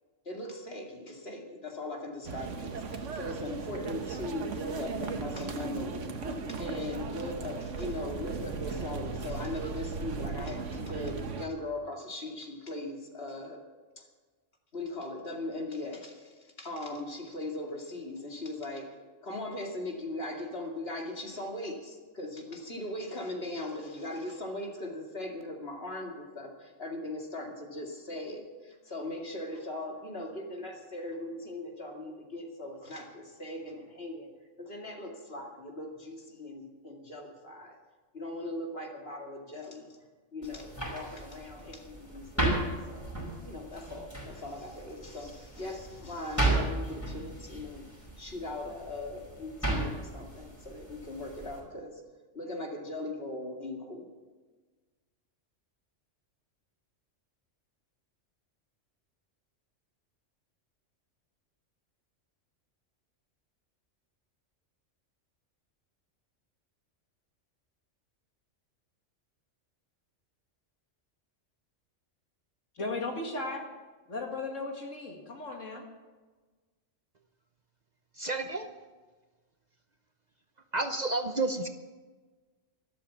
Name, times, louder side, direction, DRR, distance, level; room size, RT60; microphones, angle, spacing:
voice 1, 0.3-6.1 6.5-13.6 14.0-14.1 14.7-18.9 19.2-34.3 34.6-37.8 38.1-40.0 40.3-47.8 48.2-52.0 52.3-54.1, left 1 dB, 55° left, 1 dB, 2.5 m, -39 dB
sound 1, 2.2-11.5, right 4 dB, 75° right, 1.4 m, -37 dB
sound 2, 40.4-51.6, right 2 dB, 10° left, 5.1 m, -35 dB
voice 2, 72.8-73.6 74.1-75.8, left 3 dB, 80° left, 2 dB, 2.5 m, -36 dB
voice 3, 78.2-78.7 80.7-81.7, right 3 dB, 40° right, 7 dB, 0.8 m, -30 dB
13.0 x 12.5 x 7.3 m, 1.3 s
omnidirectional pair, 1.3 m